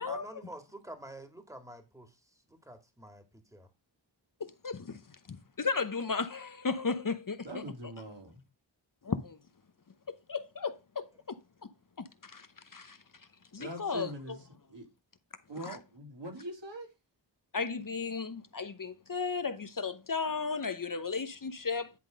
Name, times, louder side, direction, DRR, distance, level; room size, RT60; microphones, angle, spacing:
voice 1, 0.0-3.7, right 1 dB, 5° right, 2.1 m, -48 dB
voice 2, 4.4-5.0 5.3-7.5 9.0-9.4 10.1-11.1 12.0-12.5 12.7-13.0 13.5-14.1 15.7-15.8 17.5-21.9, left 4 dB, 45° left, 0.9 m, -34 dB
voice 3, 7.4-8.4 13.6-14.9 15.5-16.9, right 1 dB, 70° right, 3.3 m, -42 dB
10.5 x 3.7 x 5.1 m
wide cardioid pair, 45°, 45 cm